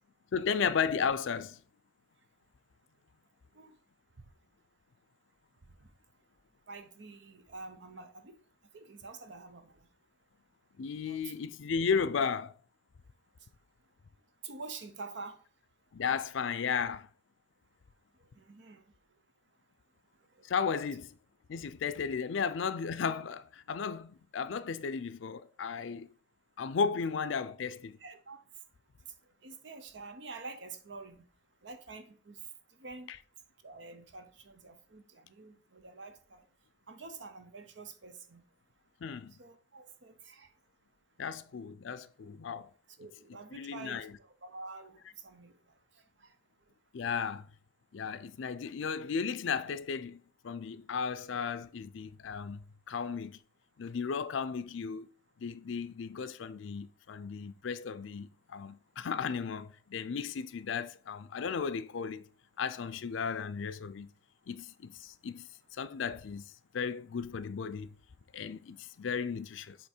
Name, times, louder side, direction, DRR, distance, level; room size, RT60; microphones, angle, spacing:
voice 1, 0.3-1.6 10.8-12.5 15.9-17.1 20.4-21.2 21.5-26.1 26.6-28.0 33.1-33.2 39.0-39.3 41.2-42.7 43.5-44.1 46.9-47.5 47.9-53.4 53.8-55.1 55.4-62.3 62.6-64.1 64.5-66.4 66.7-67.9 68.3-69.8, left 6 dB, 85° left, 0.4 m, -35 dB
voice 2, 6.7-8.4 8.7-9.7 11.1-11.4 14.4-15.4 18.2-18.8 20.3-20.4 27.0-27.2 28.0-28.4 29.4-31.2 31.6-32.4 32.8-33.1 33.6-36.4 36.9-38.4 39.4-40.5 43.0-45.6 46.2-46.3, right 3 dB, 70° right, 0.8 m, -47 dB
8.1 x 3.0 x 4.4 m
head